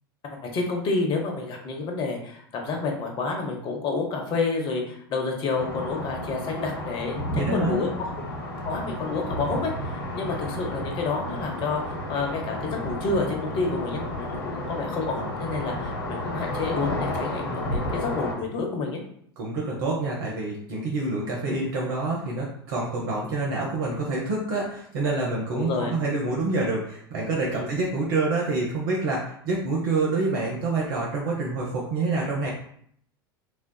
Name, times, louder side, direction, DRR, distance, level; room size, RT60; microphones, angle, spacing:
voice 1, 0.3-8.1 8.6-11.8 12.1-19.0 25.5-25.9 27.5-27.7, left 3 dB, 40° left, 2 dB, 0.9 m, -29 dB
sound 1, 5.6-18.4, left 1 dB, 70° left, 0.9 m, -32 dB
voice 2, 7.3-7.8 19.4-32.5, right 3 dB, 60° right, -3 dB, 0.8 m, -27 dB
4.3 x 2.3 x 2.2 m, 0.65 s
figure-of-eight pair, 80°, 13 cm